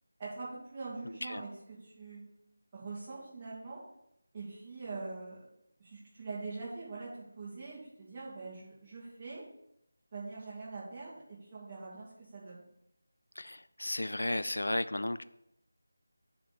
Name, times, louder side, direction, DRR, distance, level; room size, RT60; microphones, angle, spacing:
voice 1, 0.2-2.2 2.7-3.8 4.3-5.4 5.8-9.4 10.1-12.6, right 3 dB, 25° right, -7 dB, 3.0 m, -43 dB
voice 2, 13.4-15.2, left 1 dB, 70° left, 13 dB, 0.4 m, -34 dB
9.5 x 3.6 x 6.9 m, 0.81 s
figure-of-eight pair, 165°, 0 cm